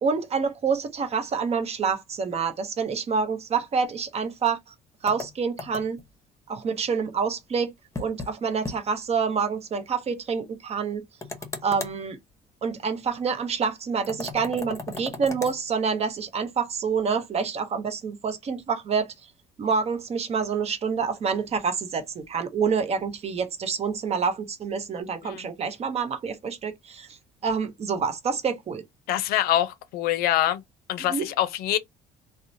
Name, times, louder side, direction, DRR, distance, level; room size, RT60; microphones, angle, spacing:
voice 1, 0.0-4.6 5.0-6.0 6.5-7.7 8.0-11.0 11.6-12.2 12.6-19.1 19.6-28.8 31.1-31.3, right 5 dB, 40° right, 0.8 m, -27 dB
sound 1, 5.1-6.1 7.9-8.3 8.6-8.8 9.1-9.2 11.2-12.0 14.0-15.6, left 3 dB, 20° left, 0.8 m, -36 dB
voice 2, 29.1-30.6 30.9-31.8, left 13 dB, 75° left, 0.5 m, -25 dB
2.8 x 2.1 x 2.6 m
cardioid pair, 95°, 16 cm